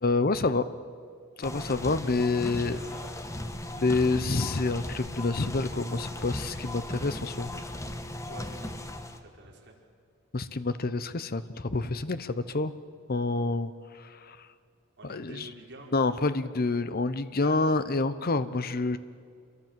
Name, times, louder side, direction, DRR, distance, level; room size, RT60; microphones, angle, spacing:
voice 1, 0.0-0.7 1.4-2.8 3.7-7.5 10.3-12.7 13.1-14.5 15.0-15.5 15.9-19.0, left 3 dB, 45° left, 13 dB, 0.9 m, -28 dB
sound 1, 1.4-9.2, left 1 dB, 15° left, 1.3 m, -37 dB
voice 2, 2.4-3.6 8.3-8.8 9.1-9.7 15.0-15.9 17.4-17.6, right 2 dB, 55° right, -1 dB, 4.8 m, -48 dB
sound 2, 3.7-9.0, equal, 10° right, 7.4 m, -55 dB
27.5 x 23.0 x 7.6 m, 2.2 s
head